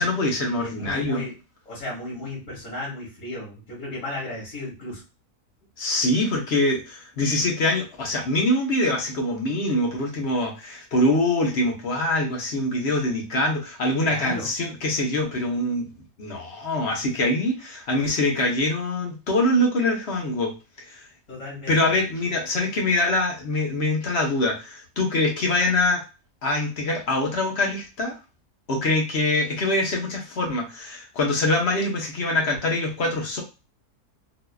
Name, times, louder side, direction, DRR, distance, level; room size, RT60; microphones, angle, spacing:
voice 1, 0.0-1.2 5.8-15.9 16.2-20.6 20.9-21.0 21.7-26.0 26.4-28.1 28.7-33.4, left 1 dB, 45° left, 0 dB, 1.1 m, -24 dB
voice 2, 0.6-1.4 1.7-5.0 14.1-14.5 21.3-22.0, left 2 dB, 70° left, -8 dB, 2.0 m, -34 dB
4.0 x 2.8 x 2.3 m, 0.30 s
omnidirectional pair, 1.6 m